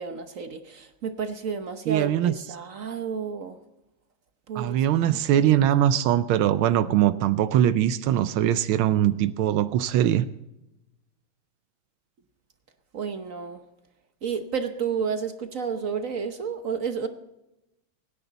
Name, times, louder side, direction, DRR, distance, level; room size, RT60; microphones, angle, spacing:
voice 1, 0.0-3.6 4.5-5.2 12.9-13.6 14.2-17.1, right 6 dB, 50° right, 8 dB, 1.1 m, -31 dB
voice 2, 1.9-2.3 4.6-10.3, right 11 dB, 90° right, 13 dB, 1.5 m, -22 dB
24.0 x 10.0 x 4.0 m, 0.93 s
omnidirectional pair, 2.2 m